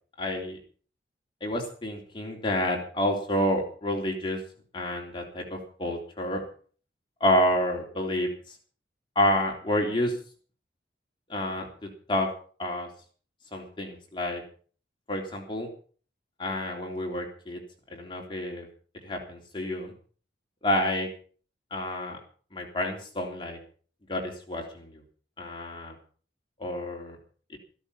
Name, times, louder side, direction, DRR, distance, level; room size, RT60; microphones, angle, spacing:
voice 1, 0.2-0.6 1.4-4.4 4.7-6.4 7.2-8.3 9.1-10.1 11.3-11.7 12.1-12.3 12.6-12.9 13.5-14.4 15.1-15.7 16.4-17.6 17.9-18.7 19.0-19.9 20.6-21.1 21.7-22.2 22.5-23.6 24.1-25.0 25.4-25.9 26.6-27.2, left 1 dB, 25° left, 1 dB, 3.4 m, -29 dB
15.0 x 13.5 x 5.7 m, 0.42 s
head